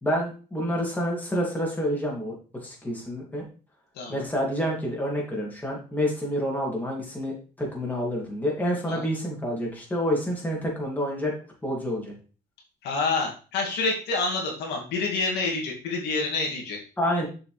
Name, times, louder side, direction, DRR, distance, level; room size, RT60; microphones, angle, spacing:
voice 1, 0.0-2.3 2.6-3.4 4.1-11.3 11.6-12.1 17.0-17.3, equal, 10° left, -2 dB, 2.5 m, -28 dB
voice 2, 12.8-16.8, left 3 dB, 80° left, -1 dB, 2.3 m, -28 dB
7.0 x 5.0 x 3.3 m, 0.36 s
cardioid pair, 110°, 17 cm